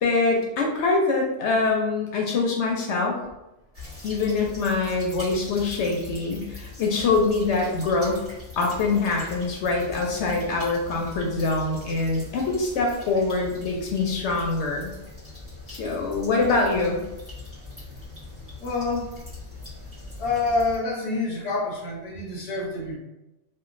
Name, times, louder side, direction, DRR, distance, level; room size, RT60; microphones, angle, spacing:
voice 1, 0.0-3.1 4.0-8.2 8.6-14.9 15.7-17.0, left 3 dB, 70° left, 0 dB, 0.8 m, -24 dB
sound 1, 3.7-20.8, left 2 dB, 10° right, 1.1 m, -41 dB
voice 2, 18.6-19.1 20.2-23.0, left 3 dB, 35° left, -4 dB, 0.7 m, -27 dB
2.9 x 2.3 x 2.5 m, 0.96 s
omnidirectional pair, 1.2 m